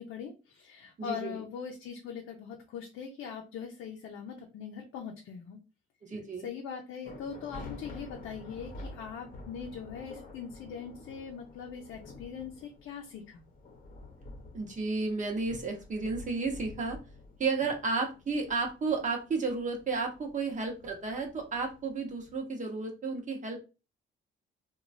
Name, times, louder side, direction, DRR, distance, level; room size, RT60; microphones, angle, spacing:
voice 1, 0.0-5.6 6.1-13.4, left 7 dB, 80° left, 1 dB, 0.5 m, -41 dB
voice 2, 1.0-1.4 6.0-6.5 14.5-17.0 17.4-23.6, right 4 dB, 40° right, 2 dB, 0.9 m, -32 dB
sound 1, 7.0-22.4, left 2 dB, 45° left, 0.8 m, -49 dB
3.0 x 2.3 x 2.5 m, 0.30 s
cardioid pair, 90°, 20 cm